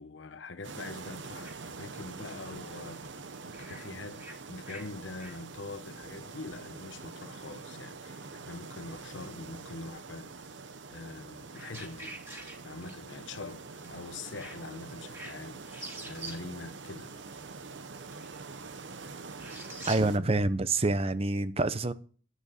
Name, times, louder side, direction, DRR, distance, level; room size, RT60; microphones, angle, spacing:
voice 1, 0.0-10.6 10.9-12.2 12.6-17.1, left 3 dB, 90° left, 0.9 m, -44 dB
sound 1, 0.6-20.2, right 4 dB, 75° right, 0.8 m, -45 dB
sound 2, 1.4-1.7 2.4-2.6 3.5-4.9 5.2-5.4 5.7-5.9 6.3-7.1 7.4-7.9 8.2-8.6 8.9-9.6 10.0-10.6 11.2-13.2 13.5-13.6 13.8-14.0 14.3-15.4 15.6-16.5 16.9-20.0, right 1 dB, 15° right, 2.9 m, -47 dB
voice 2, 19.9-21.9, right 2 dB, 35° right, 0.7 m, -27 dB
11.0 x 8.8 x 4.2 m
head